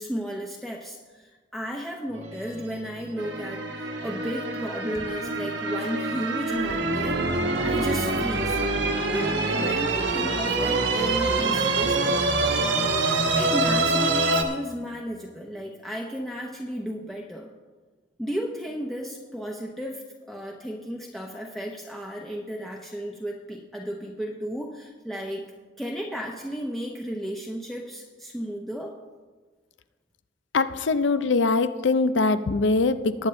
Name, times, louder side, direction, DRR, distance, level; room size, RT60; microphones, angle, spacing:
voice 1, 0.0-8.6 9.1-12.2 13.3-17.5 18.2-25.5 25.8-29.0, equal, ahead, -1 dB, 0.7 m, -34 dB
sound 1, 2.1-14.0, right 1 dB, 35° right, 1.2 m, -43 dB
sound 2, 3.2-14.4, right 3 dB, 70° right, 1.2 m, -25 dB
voice 2, 30.5-33.3, left 3 dB, 75° left, 13 dB, 0.5 m, -22 dB
19.0 x 8.9 x 3.2 m, 1.4 s
head